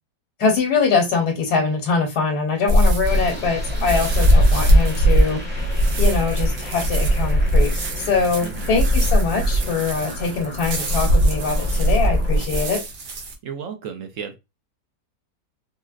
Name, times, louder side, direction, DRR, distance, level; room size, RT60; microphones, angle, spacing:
voice 1, 0.4-12.8, left 5 dB, 75° left, 1.3 m, -23 dB
sound 1, 2.7-13.3, equal, 90° right, 1.5 m, -20 dB
sound 2, 3.0-12.5, left 1 dB, 10° right, 0.7 m, -34 dB
voice 2, 3.8-4.1 8.4-8.8 13.4-14.4, right 7 dB, 65° right, 0.8 m, -34 dB
4.7 x 2.0 x 2.4 m
omnidirectional pair, 1.8 m